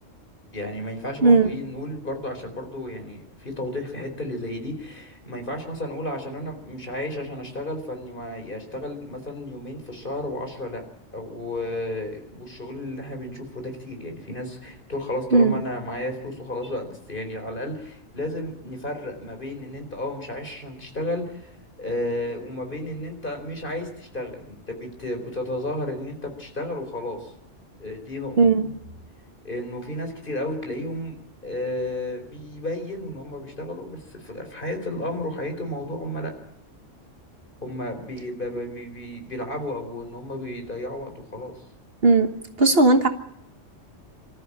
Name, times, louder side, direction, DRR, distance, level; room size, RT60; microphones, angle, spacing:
voice 1, 0.5-10.9 11.1-27.3 27.8-28.4 29.4-31.2 31.4-36.3 37.6-41.5, left 1 dB, 40° left, 4 dB, 4.5 m, -32 dB
voice 2, 1.2-1.5 15.3-15.6 28.4-28.7 42.0-42.3 42.6-43.1, right 3 dB, 50° right, 7 dB, 1.6 m, -17 dB
25.5 x 13.5 x 8.7 m, 0.78 s
omnidirectional pair, 1.3 m